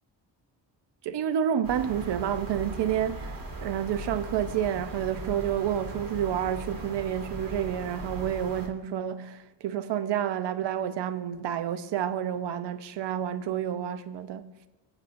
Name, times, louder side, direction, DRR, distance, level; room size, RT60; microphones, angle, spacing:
voice 1, 1.0-14.5, right 9 dB, 75° right, 0.8 m, -29 dB
sound 1, 1.6-8.7, right 2 dB, 50° right, 1.8 m, -39 dB
21.5 x 7.9 x 2.6 m
cardioid pair, 75°, 43 cm